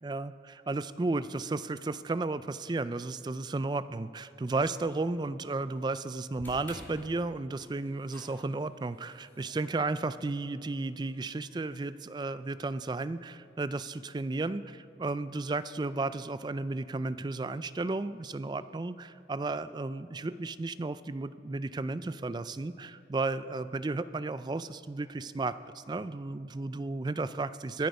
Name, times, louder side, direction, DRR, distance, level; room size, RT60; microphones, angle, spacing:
voice 1, 0.0-27.9, right 3 dB, 25° right, 14 dB, 0.3 m, -33 dB
sound 1, 6.3-12.6, equal, 10° left, 2.7 m, -53 dB
22.5 x 7.9 x 5.3 m, 2.7 s
head